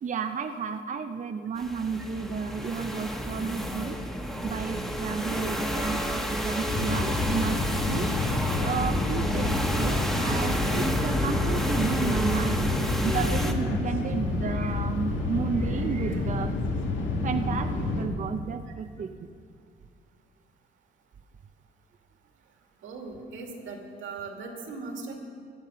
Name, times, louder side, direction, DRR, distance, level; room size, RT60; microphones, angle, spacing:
voice 1, 0.0-4.0 4.4-8.1 8.6-12.8 13.0-16.6 17.2-19.3, right 6 dB, 40° right, 6 dB, 0.6 m, -32 dB
sound 1, 1.6-13.5, equal, ahead, 1.4 m, -30 dB
sound 2, 6.7-18.1, left 2 dB, 75° left, 2.1 m, -29 dB
voice 2, 22.8-25.2, right 3 dB, 85° right, 2 dB, 2.4 m, -39 dB
15.5 x 10.5 x 5.6 m, 2.2 s
cardioid pair, 90°, 20 cm